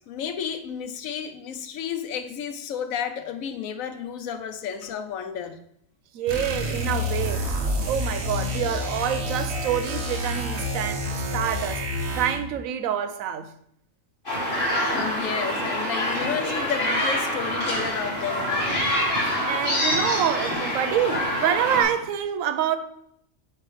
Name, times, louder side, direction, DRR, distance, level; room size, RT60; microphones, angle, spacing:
voice 1, 0.1-5.6 14.8-18.9, left 8 dB, 85° left, 1.1 m, -32 dB
voice 2, 6.1-7.6 7.9-11.8 12.1-13.5 19.4-22.8, right 9 dB, 85° right, 1.0 m, -27 dB
sound 1, 6.3-12.5, left 1 dB, 55° right, 1.2 m, -28 dB
sound 2, 14.3-21.8, equal, 40° left, 2.8 m, -26 dB
7.7 x 3.3 x 5.0 m
omnidirectional pair, 1.4 m